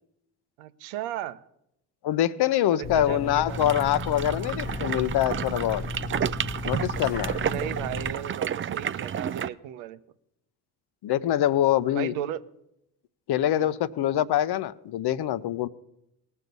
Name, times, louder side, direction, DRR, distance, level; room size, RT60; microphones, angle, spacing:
voice 1, 0.6-1.4 2.8-3.6 7.3-10.0 11.9-12.4 13.6-13.7, right 11 dB, 75° right, 13 dB, 0.8 m, -35 dB
voice 2, 2.0-5.8 6.6-7.4 11.0-12.1 13.3-15.7, left 12 dB, 55° left, 16 dB, 0.8 m, -24 dB
sound 1, 2.8-8.1, left 3 dB, 20° left, 1.4 m, -35 dB
sound 2, 3.5-9.5, right 8 dB, 25° right, 0.4 m, -31 dB
18.5 x 6.4 x 5.3 m, 0.82 s
hypercardioid pair, 50°, 48 cm